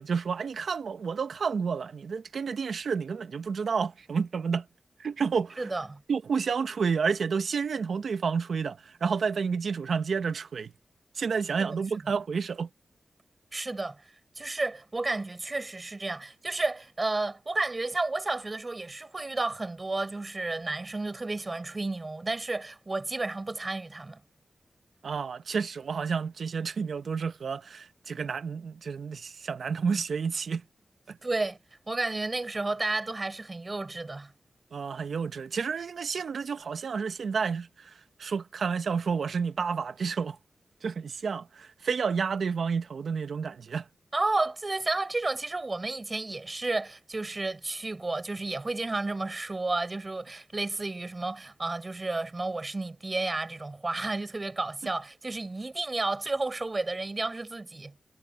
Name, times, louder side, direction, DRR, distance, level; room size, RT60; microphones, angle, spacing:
voice 1, 0.0-4.7 5.0-5.7 6.1-10.7 11.1-12.7 25.0-30.6 31.1-31.2 34.7-37.9 38.2-40.4 40.8-43.8, right 5 dB, 75° right, 1.0 m, -30 dB
voice 2, 5.6-6.0 11.6-12.1 13.5-14.0 14.4-24.2 31.2-31.6 31.9-34.3 44.1-57.9, right 2 dB, 30° right, 5.4 m, -32 dB
wide cardioid pair, 130°, 0 cm